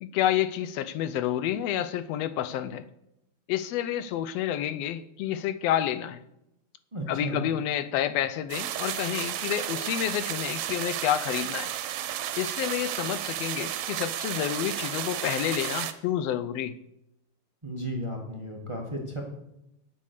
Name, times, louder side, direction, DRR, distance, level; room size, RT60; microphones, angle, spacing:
voice 1, 0.0-2.8 3.5-6.2 7.1-11.7 12.4-16.7, left 11 dB, 80° left, 14 dB, 1.4 m, -29 dB
voice 2, 6.9-7.4 17.6-19.2, right 1 dB, 45° right, 0 dB, 0.4 m, -34 dB
sound 1, 8.5-15.9, right 11 dB, 80° right, 2.1 m, -33 dB
10.5 x 8.4 x 6.6 m, 0.84 s
omnidirectional pair, 3.5 m